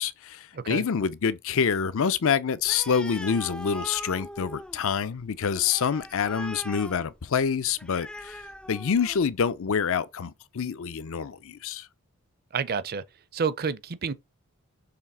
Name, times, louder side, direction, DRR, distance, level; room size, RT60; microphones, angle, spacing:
voice 1, 0.0-11.9, left 6 dB, 65° left, 0.5 m, -27 dB
voice 2, 0.5-0.8 12.5-13.0 13.3-14.1, right 5 dB, 45° right, 0.5 m, -29 dB
Animal, 2.6-9.4, left 1 dB, 5° left, 0.3 m, -41 dB
6.8 x 3.3 x 4.2 m
head